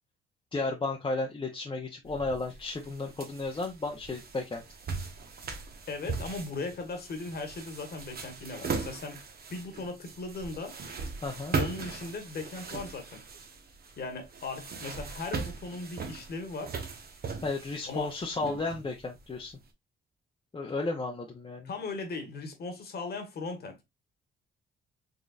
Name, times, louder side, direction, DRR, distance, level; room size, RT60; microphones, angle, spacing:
voice 1, 0.5-4.6 11.2-11.6 17.4-19.5 20.5-21.7, left 3 dB, 25° left, 0.7 m, -33 dB
sound 1, 2.1-19.5, right 4 dB, 50° right, 1.1 m, -39 dB
voice 2, 5.9-9.2 9.5-10.8 11.6-13.2 14.0-16.8 17.9-18.1 21.6-23.8, left 3 dB, 55° left, 1.4 m, -38 dB
4.1 x 3.7 x 2.4 m
cardioid pair, 90°, 20 cm